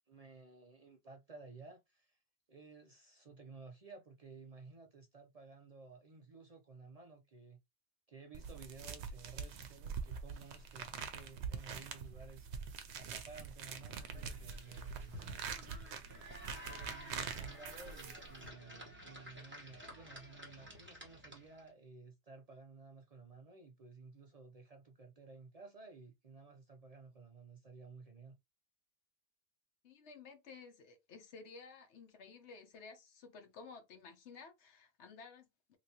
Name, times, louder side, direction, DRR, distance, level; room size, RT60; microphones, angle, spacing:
voice 1, 0.1-2.2 2.5-7.6 8.1-12.5 12.9-15.6 16.4-28.4, right 4 dB, 45° right, 0.5 m, -55 dB
sound 1, 8.3-18.5, right 6 dB, 85° right, 0.9 m, -45 dB
sound 2, 13.9-21.7, equal, 10° right, 1.1 m, -52 dB
voice 2, 29.8-35.8, left 4 dB, 85° left, 1.1 m, -54 dB
3.2 x 3.0 x 2.7 m
omnidirectional pair, 1.1 m